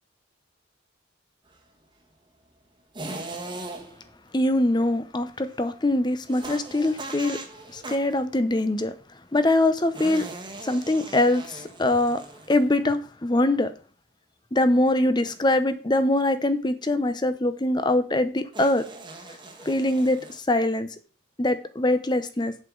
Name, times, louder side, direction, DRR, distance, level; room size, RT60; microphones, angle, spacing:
sound 1, 2.9-4.1 6.3-8.2 9.9-12.8 15.2-15.6 18.5-20.4, right 2 dB, 25° right, 1.3 m, -39 dB
voice 1, 4.3-7.4 7.7-8.9 9.3-10.3 10.6-13.7 14.5-18.9 19.6-20.9 21.4-22.6, left 1 dB, 20° left, 0.7 m, -23 dB
8.0 x 7.9 x 3.8 m
head